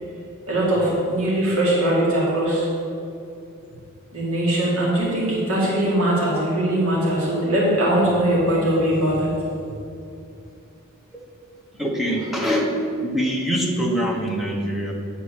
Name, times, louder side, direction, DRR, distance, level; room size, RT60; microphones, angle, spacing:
voice 1, 0.5-2.7 4.1-9.3, right 1 dB, 70° right, -6 dB, 2.0 m, -21 dB
voice 2, 11.7-12.7 13.0-14.9, equal, ahead, -2 dB, 1.0 m, -24 dB
9.0 x 4.3 x 6.6 m, 2.6 s
head